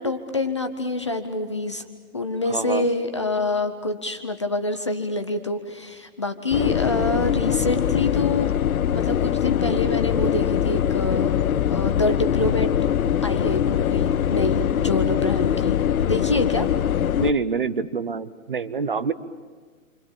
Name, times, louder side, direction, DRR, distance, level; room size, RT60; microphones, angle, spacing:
voice 1, 0.0-1.8 2.1-8.5 8.9-11.3 11.7-12.7 13.2-15.8 16.1-16.7, left 2 dB, 20° left, 7 dB, 0.7 m, -26 dB
voice 2, 2.5-2.9 17.2-19.1, right 4 dB, 40° right, 14 dB, 0.8 m, -26 dB
sound 1, 6.5-17.3, left 9 dB, 80° left, 0.8 m, -22 dB
28.0 x 25.5 x 7.2 m, 1.5 s
hypercardioid pair, 180°, 42 cm